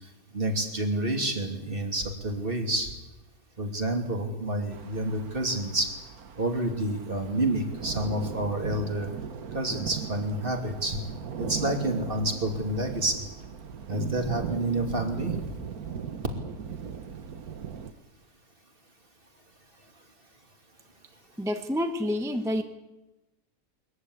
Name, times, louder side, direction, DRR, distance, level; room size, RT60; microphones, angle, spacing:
voice 1, 0.3-2.9 3.6-5.9 6.4-9.1 9.5-11.0 11.4-13.2 13.9-15.3, right 1 dB, 40° right, 3 dB, 2.9 m, -29 dB
sound 1, 4.7-17.9, right 7 dB, 85° right, 1.6 m, -38 dB
voice 2, 21.4-22.6, left 1 dB, ahead, 6 dB, 1.0 m, -28 dB
22.0 x 14.5 x 9.7 m, 1.1 s
omnidirectional pair, 1.5 m